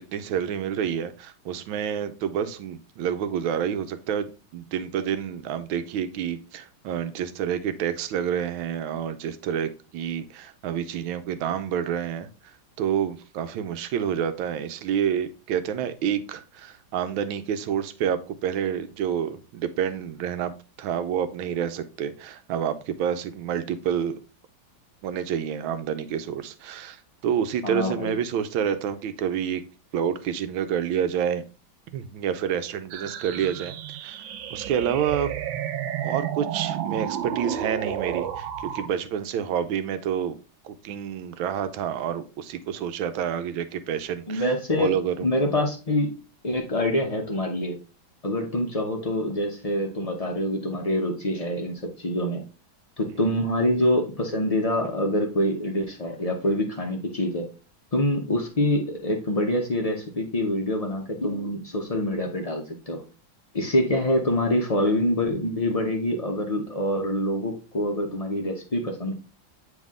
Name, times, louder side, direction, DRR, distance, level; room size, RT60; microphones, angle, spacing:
voice 1, 0.0-12.3 12.8-20.5 20.8-24.2 25.0-29.6 29.9-31.4 31.9-33.7 34.0-34.2 34.5-35.3 36.0-40.4 40.6-44.4 44.8-45.3 53.1-53.3, right 8 dB, 90° right, 11 dB, 1.5 m, -28 dB
voice 2, 27.6-28.1 44.3-44.9 45.2-46.1 46.4-47.8 48.2-52.4 53.0-57.5 57.9-63.0 63.5-69.1, left 1 dB, 65° left, 1 dB, 0.3 m, -25 dB
sound 1, 32.9-38.9, right 10 dB, 75° right, 1.3 m, -31 dB
7.4 x 3.5 x 3.6 m, 0.33 s
omnidirectional pair, 2.1 m